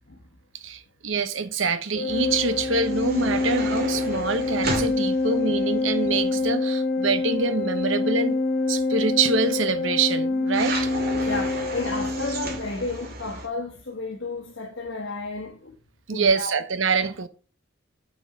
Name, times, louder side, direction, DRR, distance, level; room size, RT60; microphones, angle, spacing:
voice 1, 0.5-8.4 8.7-10.9 16.1-17.3, right 4 dB, 75° right, 1.0 m, -25 dB
Organ, 1.9-12.7, left 3 dB, 45° left, 2.0 m, -26 dB
sound 1, 2.1-6.6 10.5-13.5, right 2 dB, 50° right, 2.2 m, -34 dB
voice 2, 11.1-15.7 16.1-16.5, left 3 dB, 65° left, 1.3 m, -32 dB
7.0 x 6.8 x 5.9 m
head